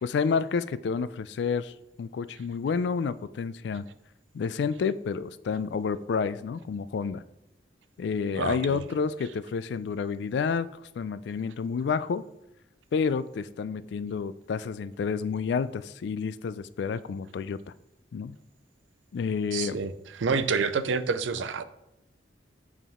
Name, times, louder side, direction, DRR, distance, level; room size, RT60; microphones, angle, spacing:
voice 1, 0.0-3.8 4.3-7.2 8.0-10.7 11.0-12.2 12.9-17.6 18.1-18.4 19.1-19.8, left 5 dB, 65° left, 0.3 m, -29 dB
voice 2, 8.4-8.8 19.5-21.6, right 5 dB, 85° right, 0.5 m, -28 dB
9.1 x 3.6 x 3.6 m
head